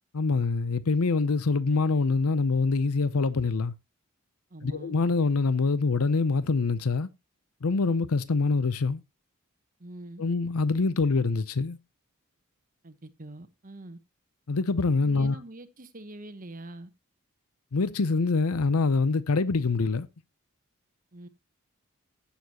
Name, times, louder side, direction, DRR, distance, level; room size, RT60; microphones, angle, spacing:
voice 1, 0.1-3.7 4.6-7.1 7.6-9.0 10.2-11.8 14.5-15.4 17.7-20.1, left 4 dB, 85° left, 0.7 m, -25 dB
voice 2, 4.5-4.9 9.8-10.2 12.8-14.0 15.0-16.9 21.1-21.3, right 1 dB, 40° right, 1.0 m, -44 dB
16.0 x 7.1 x 2.9 m
head